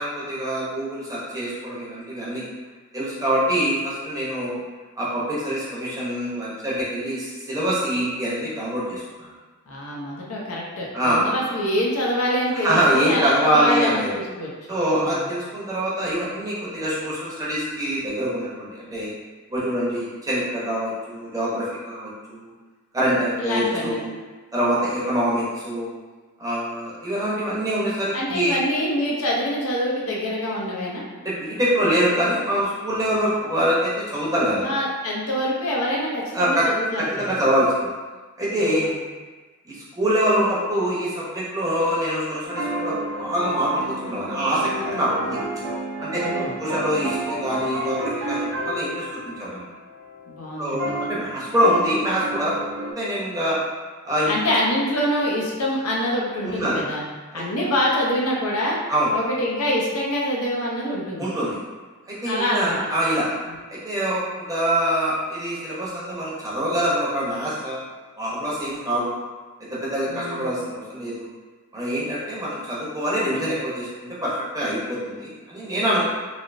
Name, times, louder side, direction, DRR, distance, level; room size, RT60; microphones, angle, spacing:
voice 1, 0.0-2.4 2.9-4.6 5.0-9.3 10.9-11.2 12.5-14.1 14.7-19.1 19.5-22.5 22.9-24.1 24.5-25.9 26.4-28.6 31.2-34.7 36.3-36.7 37.0-37.9 38.4-38.9 39.7-45.4 46.0-46.1 46.6-49.6 50.6-53.6 54.0-54.3 56.4-56.8 57.3-57.4 58.9-59.1 61.2-61.6 62.1-63.3 63.7-67.9 68.2-69.2 69.7-71.3 71.7-76.0, equal, 15° right, -8 dB, 0.8 m, -24 dB
voice 2, 9.7-14.5 15.0-15.2 23.4-24.0 28.1-31.0 34.6-37.4 38.6-39.0 46.1-46.5 50.3-51.0 54.3-57.0 57.3-58.8 59.1-61.3 62.3-62.8 63.5-63.6 70.1-70.5, equal, 65° left, -4 dB, 0.7 m, -25 dB
sound 1, 42.4-52.9, right 1 dB, 55° right, 0.7 m, -31 dB
3.3 x 2.6 x 2.5 m, 1.3 s
head